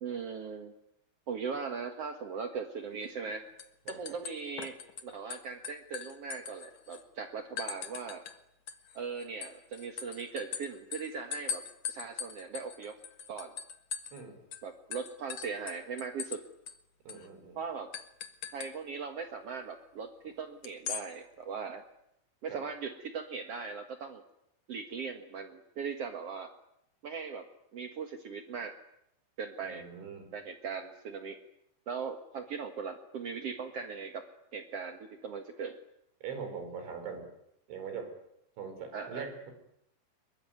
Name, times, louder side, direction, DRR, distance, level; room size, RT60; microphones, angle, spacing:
voice 1, 0.0-0.7 1.3-3.5 3.9-8.2 8.9-13.0 13.3-13.5 14.6-16.4 17.5-17.9 18.5-21.8 22.4-24.2 24.7-26.5 27.0-27.5 27.7-28.7 29.4-29.9 30.3-31.4 31.9-34.2 34.5-35.8 38.9-39.3, right 5 dB, 60° right, 5 dB, 1.6 m, -39 dB
sound 1, 3.0-3.3 3.6-5.0 5.3-7.0 7.6-8.4 8.7-14.2 14.5-14.6 14.9-16.4 16.7-16.8 17.1-17.3 17.9-18.7 20.6-21.1, left 7 dB, 55° left, 1.9 m, -40 dB
voice 2, 14.1-14.4 17.1-17.6 22.5-22.6 29.6-30.3 36.2-37.3 37.7-38.1 38.6-39.5, right 6 dB, 90° right, 7 dB, 7.7 m, -42 dB
27.0 x 22.5 x 9.5 m, 0.79 s
omnidirectional pair, 5.2 m